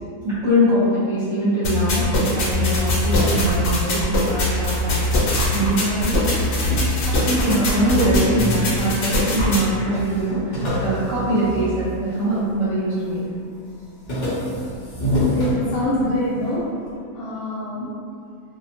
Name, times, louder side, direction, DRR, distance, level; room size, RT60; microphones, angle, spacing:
voice 1, 0.2-5.0 5.5-6.2 7.1-13.2, right 1 dB, 60° right, -13 dB, 1.0 m, -22 dB
sound 1, 1.6-9.6, left 2 dB, 70° left, 1.0 m, -21 dB
sound 2, 2.6-5.2 5.5-8.0 8.6-9.3 9.6-9.7 9.9-12.5 12.9-13.3 13.7-16.3, equal, 50° left, 0.5 m, -28 dB
voice 2, 15.2-16.6 17.1-17.9, left 1 dB, 90° left, -9 dB, 1.1 m, -25 dB
2.6 x 2.1 x 2.8 m, 2.4 s
omnidirectional pair, 1.6 m